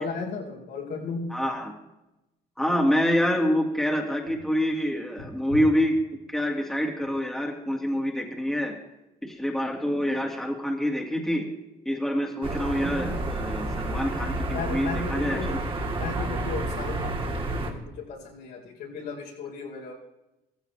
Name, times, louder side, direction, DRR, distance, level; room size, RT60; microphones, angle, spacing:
voice 1, 0.0-1.2 14.5-15.5 15.9-19.9, left 4 dB, 75° left, -2 dB, 4.7 m, -35 dB
voice 2, 1.3-1.7 2.6-5.9 6.3-8.7 9.2-11.5 11.9-15.6, equal, ahead, 0 dB, 2.2 m, -26 dB
sound 1, 12.4-17.7, right 2 dB, 30° right, 2.3 m, -30 dB
15.5 x 15.0 x 3.4 m, 0.93 s
cardioid pair, 110°, 17 cm